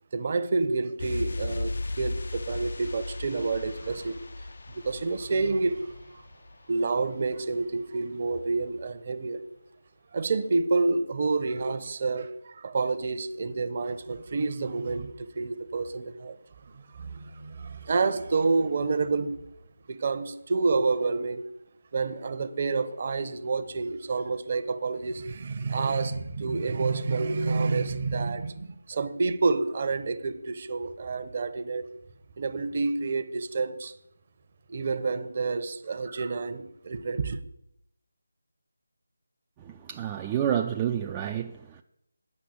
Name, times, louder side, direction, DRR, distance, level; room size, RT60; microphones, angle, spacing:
voice 1, 0.1-6.3 6.7-9.4 10.1-16.4 16.6-19.4 19.9-21.5 21.9-31.9 32.4-33.9 34.7-37.4, right 3 dB, 35° right, 0.8 m, -29 dB
sound 1, 1.0-7.5 7.8-7.9, left 2 dB, 55° left, 0.4 m, -37 dB
voice 2, 39.6-41.8, right 10 dB, 15° right, 0.3 m, -29 dB
9.8 x 5.9 x 8.0 m
figure-of-eight pair, 165°, 0 cm